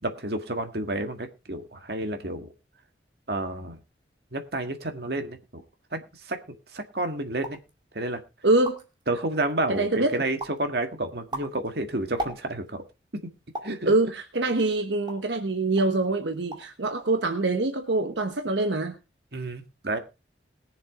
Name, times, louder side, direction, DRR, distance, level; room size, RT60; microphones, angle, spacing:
voice 1, 0.0-2.5 3.3-3.8 4.3-5.6 5.9-6.4 6.7-7.6 7.9-8.2 9.1-12.8 13.6-13.9 19.3-20.0, right 2 dB, 60° right, 6 dB, 1.8 m, -30 dB
sound 1, 7.4-7.7 8.2-8.3 8.5-9.0 9.5-10.0 10.4-10.7 11.1-12.8 13.5-13.8 14.4-15.4 15.8-16.0 16.3-16.8 17.0-17.5, right 1 dB, 25° right, 2.1 m, -38 dB
voice 2, 8.4-8.8 9.7-10.2 13.8-19.0, right 2 dB, 80° right, 5 dB, 1.2 m, -24 dB
21.0 x 7.4 x 3.6 m, 0.28 s
head